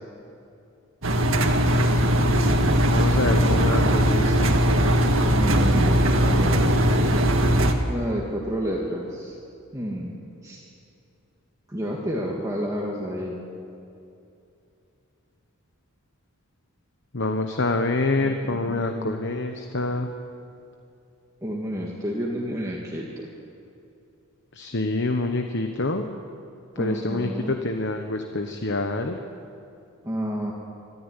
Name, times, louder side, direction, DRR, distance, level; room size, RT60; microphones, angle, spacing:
Engine, 1.0-7.7, equal, 65° right, 1.9 m, -20 dB
voice 1, 2.9-4.7 17.1-20.1 24.5-26.1 26.8-29.2, left 2 dB, 55° left, 5 dB, 1.1 m, -26 dB
voice 2, 5.3-7.2 7.9-9.4 9.7-10.2 10.4-10.6 11.7-13.4 18.2-19.1 21.4-23.3 26.8-27.6 30.0-30.5, equal, 15° right, -3 dB, 1.9 m, -30 dB
24.5 x 13.5 x 9.8 m, 2.6 s
head